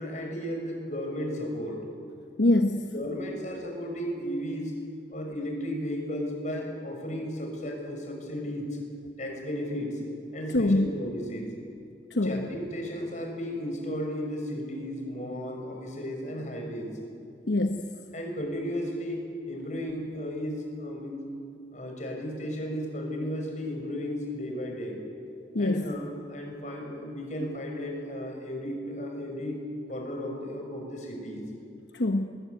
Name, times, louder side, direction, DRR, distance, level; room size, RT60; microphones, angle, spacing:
voice 1, 0.0-1.8 2.9-4.7 5.1-8.7 9.2-10.0 10.3-11.5 12.2-16.9 18.1-21.3 21.7-25.0 25.6-29.6 29.9-31.4, equal, 40° left, 1 dB, 6.1 m, -34 dB
voice 2, 2.4-2.9 10.5-10.9 12.1-12.4 17.5-17.9 25.5-25.9 31.9-32.2, left 2 dB, 75° left, 5 dB, 1.1 m, -24 dB
22.5 x 21.5 x 9.3 m, 2.4 s
head